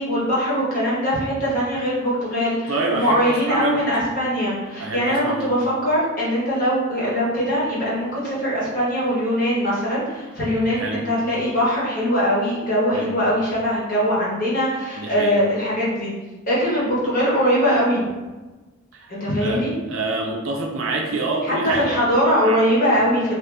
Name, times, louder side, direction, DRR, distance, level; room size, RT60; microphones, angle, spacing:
voice 1, 0.0-16.1 16.5-18.1 19.1-19.7 21.4-23.4, equal, 45° left, -7 dB, 1.1 m, -21 dB
voice 2, 2.7-3.8 4.8-5.5 10.7-11.0 12.9-13.1 15.0-15.4 18.9-19.1 19.4-19.6 19.9-21.9 22.4-22.6, right 3 dB, 75° right, 0 dB, 0.4 m, -26 dB
2.7 x 2.6 x 3.3 m, 1.2 s
head